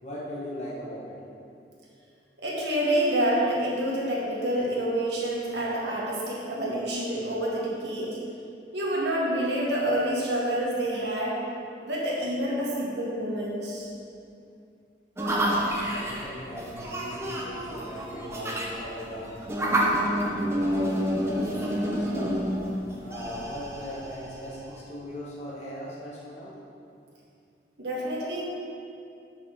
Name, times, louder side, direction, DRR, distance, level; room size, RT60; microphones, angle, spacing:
voice 1, 0.0-1.2 15.8-19.3 20.6-21.0 21.4-22.4 23.0-26.6, equal, 40° left, -6 dB, 1.3 m, -38 dB
voice 2, 2.4-8.2 8.7-11.3 11.8-13.9 27.8-28.4, right 1 dB, 70° right, -5 dB, 1.8 m, -28 dB
sound 1, 15.2-24.8, equal, 15° right, 0.9 m, -29 dB
7.5 x 6.2 x 4.8 m, 2.5 s
head